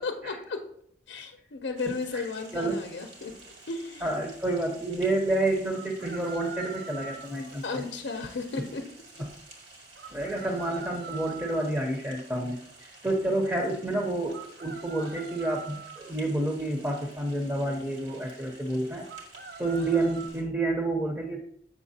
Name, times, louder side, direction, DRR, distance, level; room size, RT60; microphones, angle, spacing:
voice 1, 0.0-0.6 1.1-3.3 3.7-4.1 7.6-8.8, left 4 dB, 75° left, 5 dB, 0.6 m, -34 dB
sound 1, 1.8-20.4, right 2 dB, 80° right, 1.8 m, -51 dB
sound 2, 2.8-2.9 5.7-7.6 10.0-11.8 14.3-16.1 19.1-20.3, right 5 dB, 60° right, 0.6 m, -43 dB
voice 2, 4.0-7.8 9.2-9.3 10.1-19.1 19.6-21.4, right 2 dB, 10° right, 2 dB, 0.6 m, -29 dB
7.2 x 5.8 x 2.7 m, 0.69 s
head